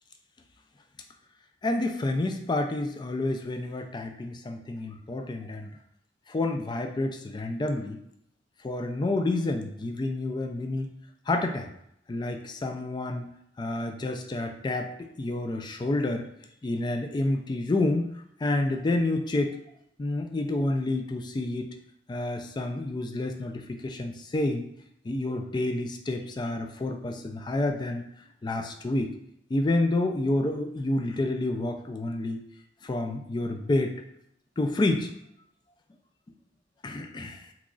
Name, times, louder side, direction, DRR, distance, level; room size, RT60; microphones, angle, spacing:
voice 1, 1.6-5.7 6.3-8.0 8.6-10.9 11.3-11.7 12.1-13.3 13.6-16.3 16.6-19.6 20.0-21.8 22.1-24.7 25.0-28.0 28.4-29.1 29.5-32.4 32.8-33.9 34.6-35.1 36.8-37.5, left 2 dB, 25° left, 5 dB, 0.3 m, -29 dB
3.0 x 2.3 x 3.7 m, 0.73 s
head